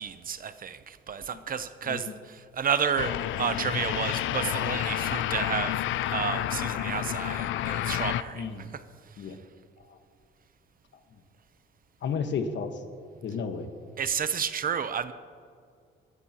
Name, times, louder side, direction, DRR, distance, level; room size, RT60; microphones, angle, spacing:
voice 1, 0.0-8.8 14.0-15.1, right 7 dB, 45° right, 0.8 m, -31 dB
voice 2, 1.8-2.1 8.3-8.7 9.2-9.4 9.9-10.0 12.0-12.8 13.2-13.7, left 5 dB, 65° left, 1.4 m, -32 dB
sound 1, 3.0-8.2, left 12 dB, 80° left, 0.5 m, -30 dB
20.5 x 13.5 x 3.0 m
cardioid pair, 90°, 20 cm